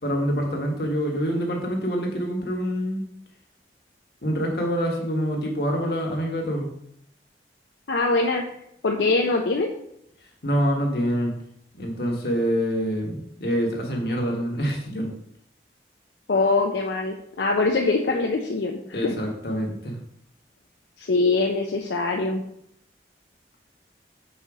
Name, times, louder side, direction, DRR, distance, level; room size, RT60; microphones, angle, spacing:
voice 1, 0.0-3.0 4.2-6.7 10.4-11.3 11.7-15.1 18.9-19.9, equal, 65° left, 0 dB, 1.4 m, -26 dB
voice 2, 7.9-8.4 8.8-9.7 16.3-19.1 21.0-22.4, left 3 dB, 85° left, 1 dB, 0.6 m, -23 dB
5.6 x 4.1 x 4.8 m, 0.75 s
head